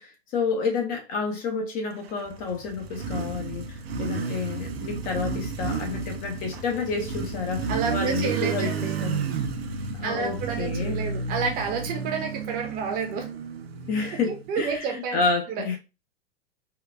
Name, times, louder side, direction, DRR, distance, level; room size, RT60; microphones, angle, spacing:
voice 1, 0.0-8.7 9.0-9.2 10.0-11.0 13.8-15.8, left 4 dB, 25° left, 0.6 m, -29 dB
Motorcycle, 2.1-14.8, right 5 dB, 70° right, 0.6 m, -32 dB
voice 2, 7.7-9.4 10.0-13.3 14.3-15.2 15.5-15.6, right 5 dB, 30° right, 0.7 m, -30 dB
3.7 x 2.2 x 2.2 m
figure-of-eight pair, 100°, 32 cm